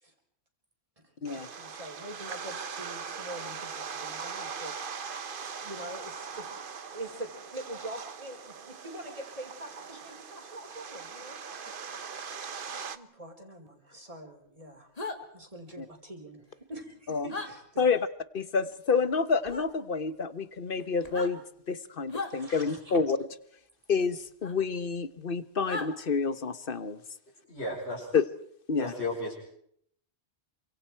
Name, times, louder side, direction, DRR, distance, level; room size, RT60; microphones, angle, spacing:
voice 1, 1.0-5.1 5.6-11.4 12.7-14.9 15.3-17.9 22.2-23.0, right 1 dB, 30° right, 3 dB, 4.2 m, -44 dB
sound 1, 1.3-13.0, right 6 dB, 50° right, 1.2 m, -40 dB
sound 2, 15.0-15.2 17.3-17.5 19.5-19.7 21.0-21.3 22.1-22.3 24.4-24.5 25.7-25.9, left 3 dB, 35° left, 2.5 m, -35 dB
voice 2, 18.3-21.4 21.7-23.2 23.9-27.0 28.1-28.2 28.7-28.9, left 5 dB, 55° left, 13 dB, 1.3 m, -28 dB
voice 3, 27.5-28.1 28.8-29.3, left 2 dB, 70° left, -2 dB, 6.1 m, -34 dB
27.5 x 25.0 x 4.6 m, 0.67 s
omnidirectional pair, 1.1 m